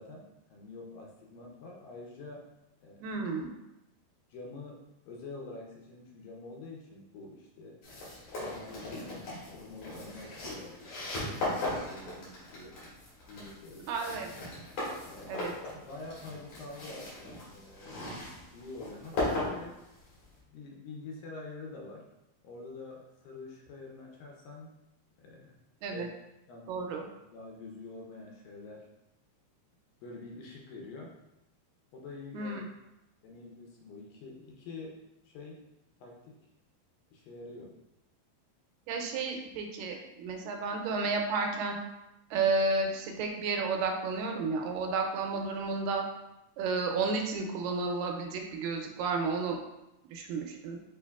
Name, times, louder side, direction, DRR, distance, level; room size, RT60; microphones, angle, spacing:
voice 1, 0.0-2.5 2.8-3.1 4.3-7.8 8.4-12.8 13.3-14.0 15.0-15.4 15.8-18.1 18.5-19.8 20.5-22.1 22.4-24.8 25.2-25.6 25.9-26.1 26.5-28.9 30.0-31.2 31.9-32.6 33.2-35.7 36.0-36.5 37.1-37.8, left 3 dB, 80° left, 0 dB, 2.4 m, -47 dB
voice 2, 3.0-3.5 13.9-14.3 15.3-15.5 25.8-26.1 26.7-27.1 32.3-32.6 38.9-41.8 42.3-46.0 46.6-49.6 50.1-50.8, right 4 dB, 85° right, 3 dB, 2.3 m, -32 dB
sound 1, 7.8-20.4, left 2 dB, 65° left, 2.9 m, -38 dB
6.8 x 2.8 x 2.3 m, 0.91 s
omnidirectional pair, 4.0 m